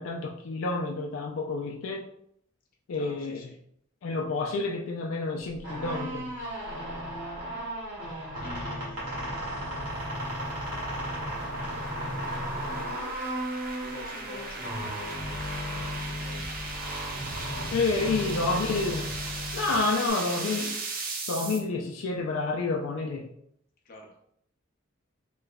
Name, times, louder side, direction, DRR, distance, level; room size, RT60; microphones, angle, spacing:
voice 1, 0.0-2.1 2.9-3.4 4.0-6.3 17.7-19.1 19.5-20.7 21.3-23.3, left 3 dB, 80° left, 1 dB, 0.4 m, -29 dB
voice 2, 2.9-3.6 8.4-9.6 10.1-10.7 11.3-15.6 16.0-16.7 17.7-18.8 19.7-20.6 23.8-24.1, left 3 dB, 45° left, 0 dB, 0.7 m, -48 dB
sound 1, 5.5-20.1, equal, 65° right, 1.4 m, -35 dB
sound 2, 7.6-21.6, right 3 dB, 45° right, 0.5 m, -39 dB
sound 3, 14.8-19.8, equal, 5° right, 1.0 m, -50 dB
3.5 x 2.9 x 2.2 m, 0.71 s
head